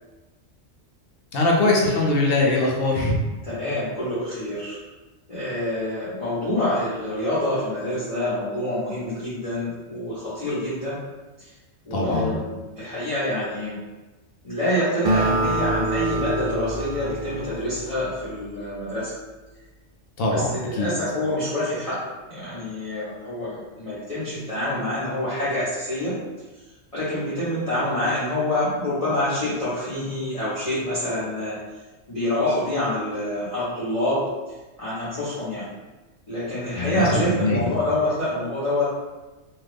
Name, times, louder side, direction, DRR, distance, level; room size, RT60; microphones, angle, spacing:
voice 1, 1.3-3.2 11.9-12.3 20.2-20.9 36.8-37.7, left 2 dB, 65° left, -2 dB, 0.7 m, -22 dB
voice 2, 3.4-4.8 5.3-11.0 11.9-13.8 14.4-19.1 20.3-22.0 22.3-26.1 26.9-31.6 32.1-34.2 34.8-35.6 36.3-38.9, left 1 dB, 35° left, -12 dB, 0.9 m, -26 dB
Acoustic guitar, 15.0-18.6, right 2 dB, 60° right, 0.7 m, -26 dB
2.6 x 2.3 x 3.3 m, 1.1 s
omnidirectional pair, 1.3 m